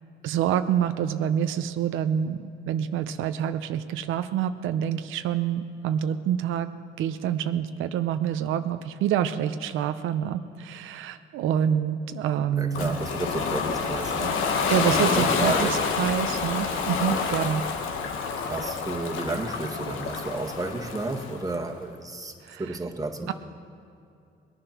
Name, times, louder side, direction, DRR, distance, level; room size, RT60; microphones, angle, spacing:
voice 1, 0.2-6.7 7.0-12.9 14.7-15.7 16.0-17.6 22.4-22.6, right 9 dB, 90° right, 9 dB, 0.6 m, -27 dB
voice 2, 12.6-15.8 18.4-23.3, right 2 dB, 20° right, 1 dB, 1.7 m, -32 dB
Ocean, 12.7-21.6, left 5 dB, 85° left, 1.3 m, -28 dB
20.0 x 10.0 x 5.9 m, 2.5 s
cardioid pair, 90°, 20 cm